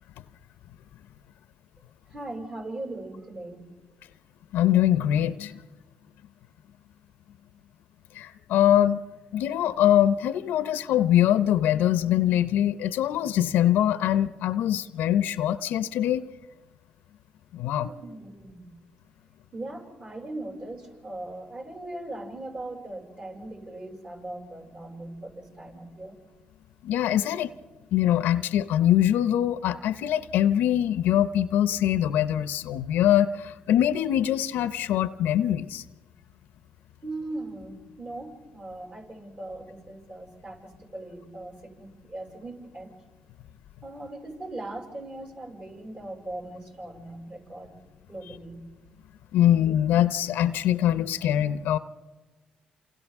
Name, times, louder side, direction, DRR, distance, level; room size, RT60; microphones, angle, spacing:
voice 1, 2.1-3.6 17.8-18.7 19.5-26.1 37.0-42.9 43.8-47.7 48.1-48.6, right 2 dB, 45° right, -1 dB, 6.3 m, -39 dB
voice 2, 4.5-5.6 8.2-9.0 9.3-16.2 17.5-17.9 26.8-27.5 27.9-35.8 49.3-51.8, left 11 dB, 80° left, 14 dB, 0.6 m, -23 dB
28.5 x 28.0 x 3.6 m, 1.3 s
supercardioid pair, 60°, 3 cm